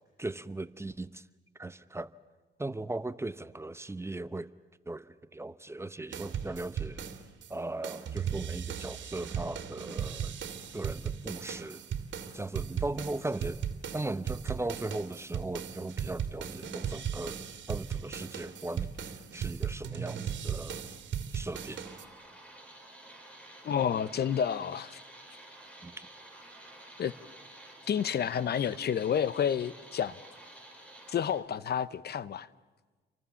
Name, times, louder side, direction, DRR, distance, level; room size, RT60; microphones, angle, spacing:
voice 1, 0.2-1.2 1.6-2.1 2.6-4.5 4.9-7.1 7.5-10.3 10.7-11.9 12.3-13.6 13.9-17.4 17.7-20.8 21.3-21.9 25.8-26.1, right 2 dB, 15° right, 0.8 m, -38 dB
sound 1, 6.1-7.5 7.8-22.0, right 8 dB, 65° right, 2.5 m, -37 dB
sound 2, 21.5-31.4, right 1 dB, 5° left, 7.2 m, -51 dB
voice 2, 23.6-25.0 27.0-27.1 27.9-30.2 31.1-32.5, left 8 dB, 55° left, 0.9 m, -30 dB
30.0 x 24.0 x 7.1 m
cardioid pair, 90°, 20 cm